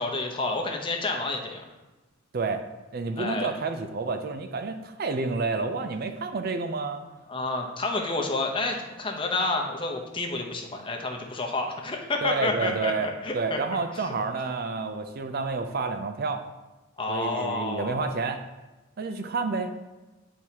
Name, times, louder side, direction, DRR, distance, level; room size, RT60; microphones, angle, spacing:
voice 1, 0.0-1.6 3.2-3.5 7.3-13.6 13.9-14.0 17.0-18.1, left 3 dB, 25° left, 2 dB, 0.7 m, -29 dB
voice 2, 2.3-2.7 2.9-7.0 12.2-16.4 17.1-18.4 19.0-19.7, right 4 dB, 50° right, 7 dB, 0.4 m, -29 dB
8.9 x 4.6 x 2.8 m, 1.1 s
head